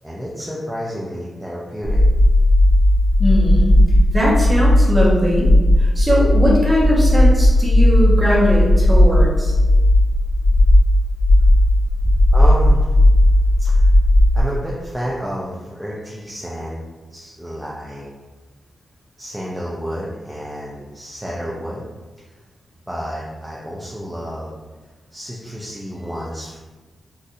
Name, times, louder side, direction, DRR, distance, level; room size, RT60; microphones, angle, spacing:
voice 1, 0.0-2.0 12.3-12.9 13.6-13.9 14.3-16.8 17.1-18.0 19.2-21.8 22.9-24.6 25.1-26.6, equal, 5° right, -6 dB, 0.4 m, -30 dB
sound 1, 1.8-14.4, left 1 dB, 70° left, 1.3 m, -14 dB
voice 2, 3.2-3.8 4.1-5.5 5.8-9.5, equal, 20° right, -6 dB, 1.0 m, -20 dB
4.0 x 2.5 x 2.5 m, 1.3 s
wide cardioid pair, 140°, 0 cm